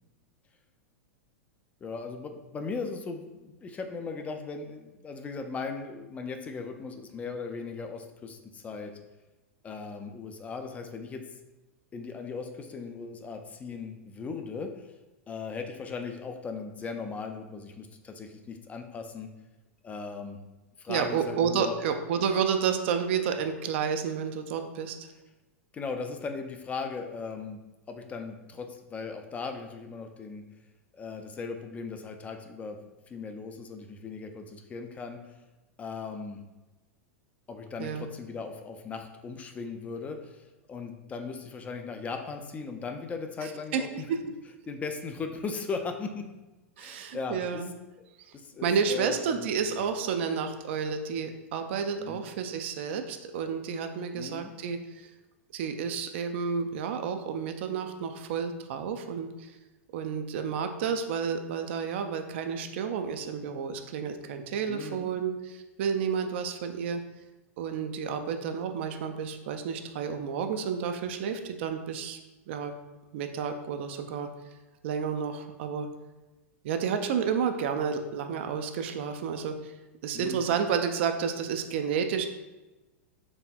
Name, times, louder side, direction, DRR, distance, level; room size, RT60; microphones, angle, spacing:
voice 1, 1.8-8.9 9.6-11.2 11.9-15.0 15.3-19.3 19.8-20.4 20.8-21.8 25.7-27.6 27.9-30.4 30.9-32.8 33.1-35.4 35.8-36.4 37.5-44.1 44.7-46.3 46.8-47.6 48.3-49.5 49.8-49.9 52.0-52.3 54.1-54.5 64.7-65.1 80.1-80.5, left 4 dB, 20° left, 5 dB, 0.3 m, -38 dB
voice 2, 20.9-25.1 37.8-38.1 43.4-44.2 46.8-47.7 48.3-48.4 48.6-55.1 55.5-59.6 59.9-67.0 67.6-72.2 72.5-72.7 73.1-74.3 74.8-75.9 76.6-79.7 80.0-82.3, right 6 dB, 55° right, 7 dB, 0.4 m, -31 dB
4.1 x 3.3 x 2.2 m, 1.1 s
figure-of-eight pair, 95°, 8 cm